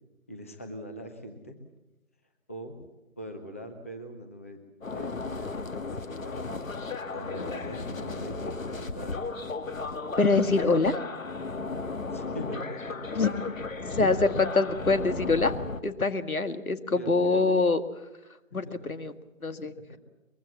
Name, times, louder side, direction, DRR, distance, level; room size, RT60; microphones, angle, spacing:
voice 1, 0.3-1.6 2.5-2.8 3.2-4.6 4.9-6.7 7.1-9.3 12.1-13.1 16.1-16.3 16.9-17.6 18.7-18.8 19.9-20.0, equal, 10° left, 5 dB, 0.7 m, -41 dB
sound 1, 4.8-15.8, left 3 dB, 70° left, 1.8 m, -35 dB
voice 2, 10.2-11.0 13.1-13.3 13.8-15.5 15.8-17.8 18.5-19.1 19.4-19.7, left 3 dB, 85° left, 11 dB, 2.0 m, -24 dB
23.5 x 22.5 x 7.3 m, 0.99 s
figure-of-eight pair, 155°, 42 cm